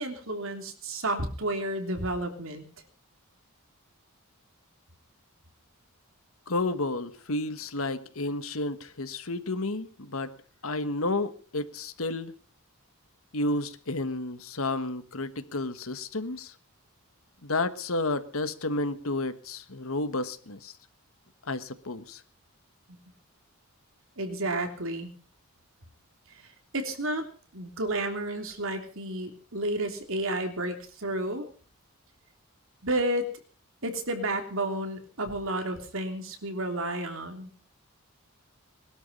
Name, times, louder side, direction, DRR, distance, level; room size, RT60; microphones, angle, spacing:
voice 1, 0.0-2.6 24.2-25.1 26.3-26.5 26.7-27.3 27.5-31.5 32.8-33.3 33.8-37.5, right 1 dB, 65° right, 5 dB, 3.3 m, -31 dB
voice 2, 6.5-10.3 10.6-12.3 13.3-16.5 17.4-20.7 21.5-22.2, left 2 dB, 70° left, 12 dB, 1.5 m, -31 dB
21.0 x 12.5 x 5.5 m, 0.42 s
head